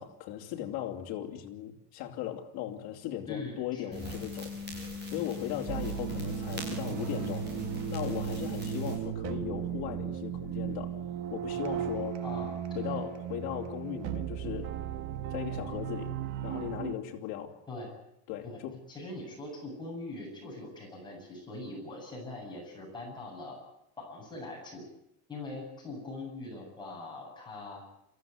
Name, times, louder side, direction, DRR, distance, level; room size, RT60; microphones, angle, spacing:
voice 1, 0.0-4.5 5.0-7.6 7.9-11.0 11.3-12.2 12.7-14.7 15.3-16.2 16.4-17.6 18.3-18.8, left 11 dB, 55° left, 3.0 m, -38 dB
voice 2, 3.3-4.2 12.2-12.9 17.7-17.9 18.4-18.6 18.9-23.6 24.0-24.8 25.3-27.8, left 2 dB, 10° left, 7.9 m, -42 dB
sound 1, 3.9-8.9, left 3 dB, 25° right, 6.9 m, -40 dB
sound 2, 5.7-16.9, right 10 dB, 55° right, 1.5 m, -36 dB
27.5 x 15.0 x 9.4 m
cardioid pair, 180°, 43 cm